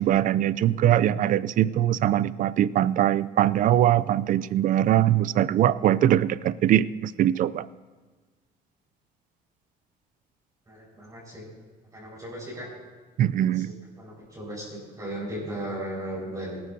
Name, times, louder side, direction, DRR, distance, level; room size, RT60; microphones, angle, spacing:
voice 1, 0.0-7.7 13.2-13.7, right 11 dB, 50° right, 19 dB, 0.4 m, -22 dB
voice 2, 10.7-11.4 11.9-12.7 13.5-16.6, right 1 dB, 20° right, -5 dB, 5.0 m, -36 dB
20.0 x 12.5 x 2.7 m, 1.3 s
cardioid pair, 110°, 17 cm